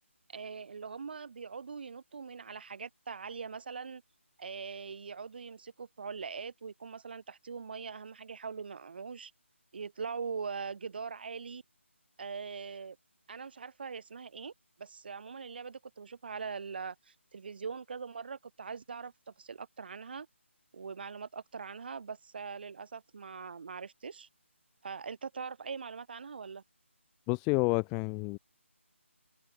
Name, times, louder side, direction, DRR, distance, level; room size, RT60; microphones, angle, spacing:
voice 1, 0.3-4.0 4.4-9.3 9.7-11.6 12.2-13.0 13.3-14.5 14.8-20.3 20.7-24.3 24.8-26.6, right 5 dB, 45° right, 6.2 m, -42 dB
voice 2, 27.3-28.4, left 33 dB, 15° left, 0.8 m, -29 dB
figure-of-eight pair, 155°, 7 cm